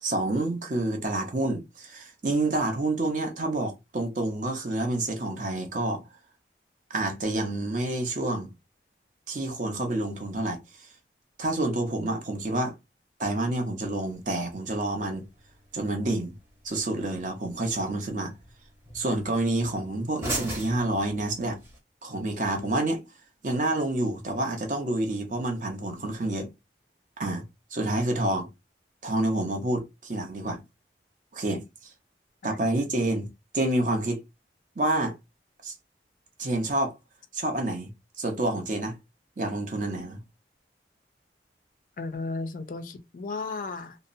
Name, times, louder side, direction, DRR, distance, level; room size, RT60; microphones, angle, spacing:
voice 1, 0.0-6.0 6.9-8.5 9.3-10.9 11.4-12.7 13.2-15.2 15.7-16.4 16.6-18.3 18.9-21.6 22.0-23.0 23.4-26.5 27.2-27.4 27.7-28.5 29.0-30.6 31.3-31.9 32.4-34.2 34.8-35.2 35.6-35.7 36.4-36.9 37.3-37.9 38.2-39.0 39.4-40.2, right 2 dB, 45° right, 0.6 m, -28 dB
sound 1, 13.8-21.8, equal, 15° right, 0.8 m, -43 dB
voice 2, 42.0-44.0, left 3 dB, 50° left, 0.3 m, -34 dB
2.7 x 2.0 x 2.5 m
head